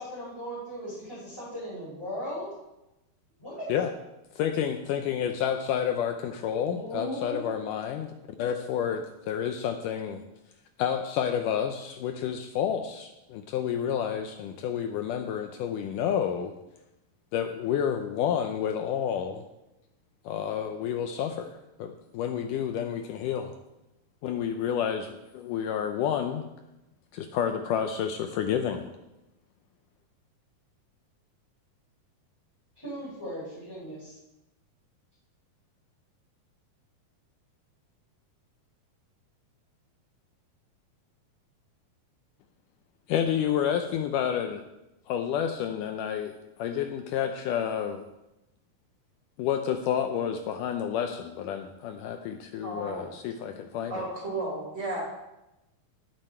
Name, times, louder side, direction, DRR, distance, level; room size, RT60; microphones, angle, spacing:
voice 1, 0.0-2.5 3.4-3.7 6.7-7.5 32.7-34.2, equal, 5° left, -11 dB, 4.8 m, -37 dB
voice 2, 4.4-10.2 10.8-16.5 17.3-19.4 20.3-23.5 24.2-26.5 27.1-28.9 43.1-44.6 45.1-48.1 49.4-54.0, left 8 dB, 80° left, 6 dB, 1.9 m, -30 dB
voice 3, 52.6-53.1 53.9-55.0, right 2 dB, 20° right, -2 dB, 3.8 m, -33 dB
18.5 x 7.4 x 4.4 m, 0.95 s
omnidirectional pair, 4.4 m